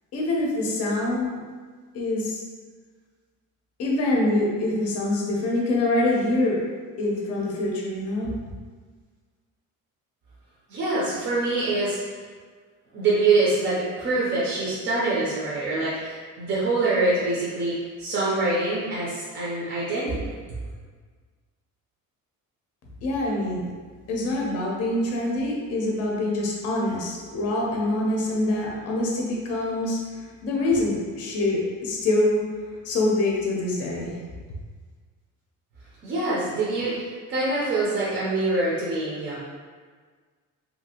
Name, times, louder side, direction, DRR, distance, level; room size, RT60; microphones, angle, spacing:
voice 1, 0.1-1.4 1.9-2.4 3.8-6.6 7.0-8.3 23.0-23.7 24.1-32.4 32.8-34.2, left 2 dB, 50° left, -2 dB, 0.6 m, -25 dB
voice 2, 10.7-12.0 12.9-20.4 36.0-39.4, right 2 dB, 40° right, -7 dB, 0.5 m, -25 dB
2.7 x 2.5 x 2.8 m, 1.5 s
cardioid pair, 180°, 32 cm